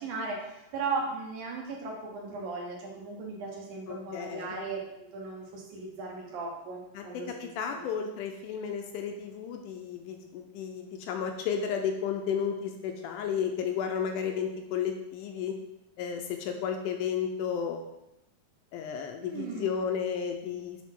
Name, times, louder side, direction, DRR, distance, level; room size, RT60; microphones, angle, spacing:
voice 1, 0.0-7.8 19.2-19.7, right 4 dB, 70° right, -1 dB, 2.3 m, -37 dB
voice 2, 3.9-4.6 6.9-15.6 16.0-17.9 18.7-20.8, left 7 dB, 80° left, 4 dB, 2.0 m, -33 dB
7.5 x 3.6 x 3.6 m, 0.87 s
omnidirectional pair, 3.8 m